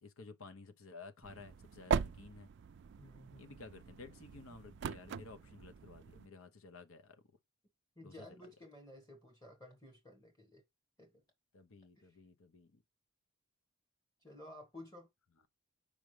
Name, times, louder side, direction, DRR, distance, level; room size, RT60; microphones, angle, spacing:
voice 1, 0.0-2.5 3.4-7.4 8.0-8.5 11.5-12.8, left 4 dB, 70° left, 0.8 m, -54 dB
sound 1, 1.2-6.3, right 6 dB, 50° right, 0.3 m, -41 dB
voice 2, 3.0-3.6 8.0-10.6 11.0-11.2 12.0-12.2 14.2-15.1, left 1 dB, 15° left, 1.5 m, -54 dB
6.1 x 4.9 x 3.3 m
head